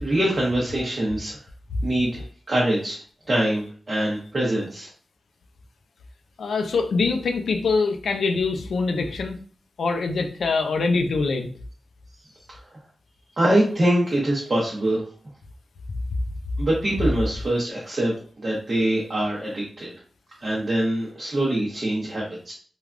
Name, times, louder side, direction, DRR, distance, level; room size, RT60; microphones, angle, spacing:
voice 1, 0.0-1.4 1.8-3.0 3.3-4.9 13.4-15.0 16.6-18.1 18.4-19.9 20.4-22.5, right 1 dB, 30° right, -5 dB, 0.7 m, -24 dB
voice 2, 6.4-9.4 9.8-11.5, left 4 dB, 75° left, 5 dB, 0.4 m, -24 dB
3.3 x 2.2 x 2.4 m, 0.43 s
wide cardioid pair, 140°, 0 cm